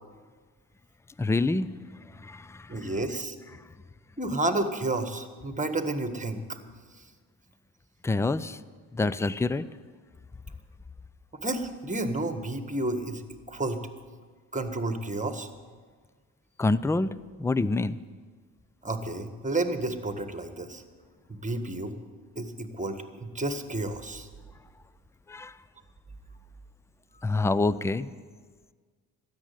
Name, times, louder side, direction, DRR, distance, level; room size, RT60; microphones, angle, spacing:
voice 1, 1.2-1.7 2.0-2.9 3.5-3.6 8.0-8.6 8.9-9.7 16.6-17.1 17.4-18.0 25.3-25.6 27.2-28.1, left 3 dB, 5° left, 17 dB, 0.4 m, -27 dB
voice 2, 2.7-3.3 4.2-6.6 11.4-13.2 13.5-13.9 14.5-15.5 18.8-20.8 21.4-21.9 22.3-24.3 27.1-27.2, right 2 dB, 15° right, 8 dB, 1.6 m, -31 dB
13.0 x 9.0 x 9.4 m, 1.5 s
hypercardioid pair, 55°, 49 cm